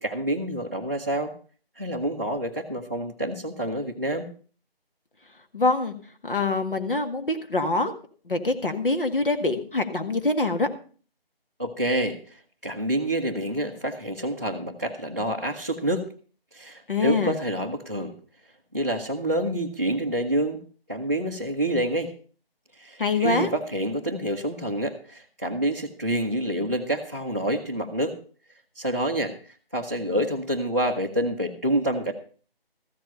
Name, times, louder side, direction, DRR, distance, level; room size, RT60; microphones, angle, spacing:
voice 1, 0.0-1.3 1.8-4.3 11.6-16.1 16.5-18.1 18.7-20.6 20.9-22.1 22.7-28.2 28.8-32.1, right 1 dB, 15° right, -3 dB, 0.6 m, -27 dB
voice 2, 5.5-5.9 6.2-7.9 8.3-10.7 16.9-17.4 23.0-23.5, left 3 dB, 60° left, 6 dB, 1.9 m, -24 dB
14.0 x 7.8 x 5.6 m, 0.41 s
figure-of-eight pair, 160°, 30 cm